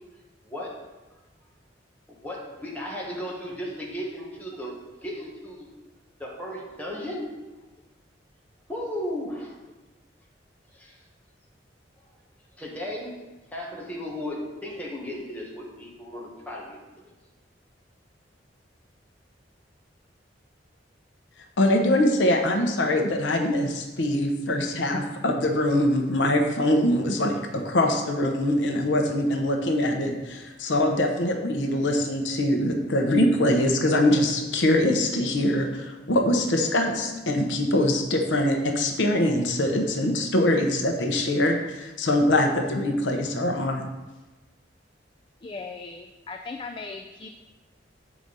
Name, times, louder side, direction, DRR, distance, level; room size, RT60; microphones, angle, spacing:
voice 1, 0.4-0.7 2.1-5.7 6.2-7.3 8.7-9.6 10.7-11.0 12.6-13.1 13.5-16.8 17.0-17.1, left 1 dB, 10° left, -4 dB, 1.4 m, -35 dB
voice 2, 21.6-43.9, left 1 dB, 75° left, 3 dB, 0.9 m, -23 dB
voice 3, 45.4-47.4, left 4 dB, 30° left, 4 dB, 0.3 m, -38 dB
7.8 x 5.0 x 4.0 m, 1.2 s
head